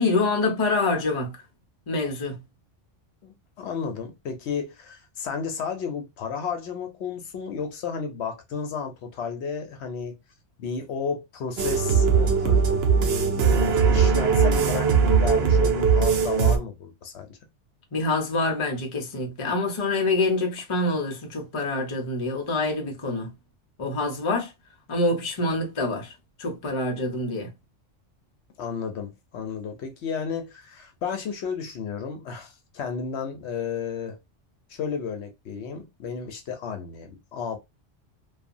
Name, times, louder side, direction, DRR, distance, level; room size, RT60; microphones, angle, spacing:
voice 1, 0.0-1.3 1.9-2.4 17.9-23.3 23.8-24.5 24.9-26.1 26.4-27.5, left 2 dB, 35° left, 0.5 m, -26 dB
voice 2, 3.2-10.2 10.6-17.4 28.6-34.2 34.7-37.6, left 6 dB, 65° left, 0.8 m, -33 dB
sound 1, 11.6-16.6, right 6 dB, 65° right, 0.8 m, -20 dB
2.7 x 2.3 x 2.5 m
omnidirectional pair, 1.3 m